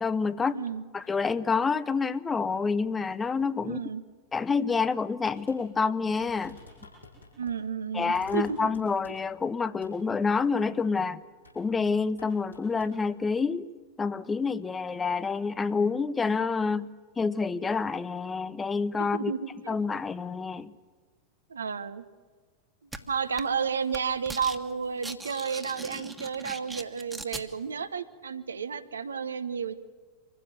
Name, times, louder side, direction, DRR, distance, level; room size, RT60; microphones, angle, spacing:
voice 1, 0.0-0.6 0.9-3.8 4.3-6.6 7.9-11.2 11.5-13.7 14.0-16.9 17.2-19.3 19.7-20.7, left 5 dB, 15° left, 16 dB, 0.7 m, -28 dB
voice 2, 0.5-0.8 3.6-4.0 7.4-8.7 19.0-19.4 19.6-19.7 21.5-22.0 23.1-29.7, right 6 dB, 70° right, 12 dB, 1.1 m, -32 dB
sound 1, 5.2-5.6 5.8-5.9 6.2-7.6 8.1-9.4 9.8-10.0 11.4-11.6 11.9-13.0, left 2 dB, 85° left, 7.6 m, -51 dB
sound 2, 22.9-23.0 23.4-23.6 23.9-24.6 24.9-27.5, right 2 dB, 10° right, 1.7 m, -40 dB
25.5 x 15.5 x 9.2 m, 1.5 s
figure-of-eight pair, 90°, 0 cm